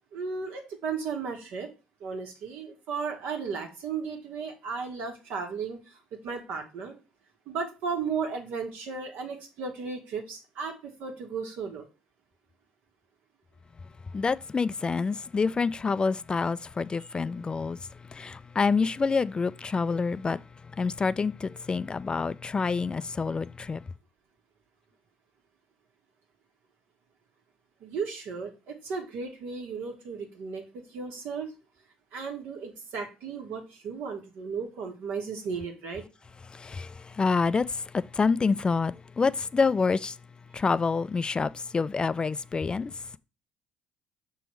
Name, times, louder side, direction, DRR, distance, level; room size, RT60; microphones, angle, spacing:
voice 1, 0.1-1.7 2.0-6.9 7.5-11.9 27.8-31.5 32.1-36.0, right 5 dB, 70° right, 1.7 m, -35 dB
voice 2, 14.1-23.8 36.5-40.2 40.5-43.1, left 4 dB, 30° left, 0.3 m, -27 dB
6.0 x 3.5 x 4.6 m
supercardioid pair, 65°, 3 cm